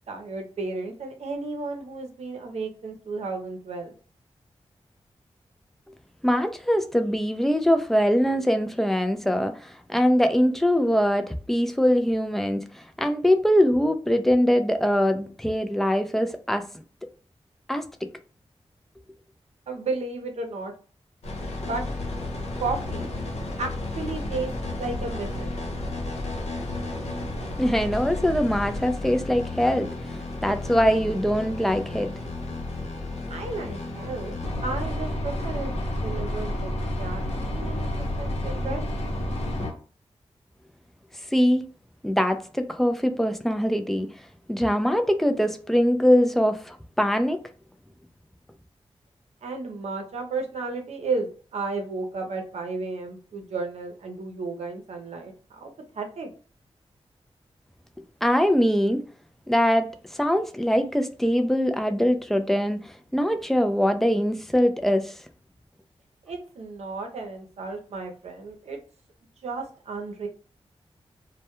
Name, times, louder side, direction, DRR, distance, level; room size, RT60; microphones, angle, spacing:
voice 1, 0.1-3.9 19.7-20.7 21.7-21.8 22.6-23.1 23.6-23.7 23.9-24.5 24.8-25.6 33.3-34.4 34.6-38.9 49.4-55.3 55.6-56.3 66.3-68.8 69.4-70.3, right 3 dB, 85° right, 0.6 m, -33 dB
voice 2, 6.2-16.7 17.7-18.1 27.6-29.9 30.4-32.1 41.3-41.6 42.0-44.2 44.5-47.4 58.2-59.0 59.5-65.2, equal, 5° left, 0.3 m, -22 dB
sound 1, 21.2-39.7, left 1 dB, 85° left, 0.7 m, -31 dB
2.2 x 2.1 x 2.9 m
wide cardioid pair, 80°, 11 cm